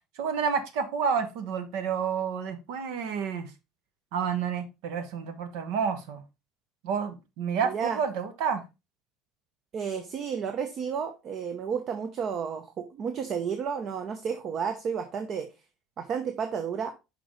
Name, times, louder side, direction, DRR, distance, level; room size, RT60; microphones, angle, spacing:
voice 1, 0.2-3.5 4.1-6.2 6.8-8.6, right 6 dB, 75° right, 1.0 m, -30 dB
voice 2, 7.6-8.0 9.7-15.5 16.0-16.9, right 7 dB, 50° right, 0.8 m, -32 dB
6.1 x 5.0 x 3.1 m
supercardioid pair, 100°, 0 cm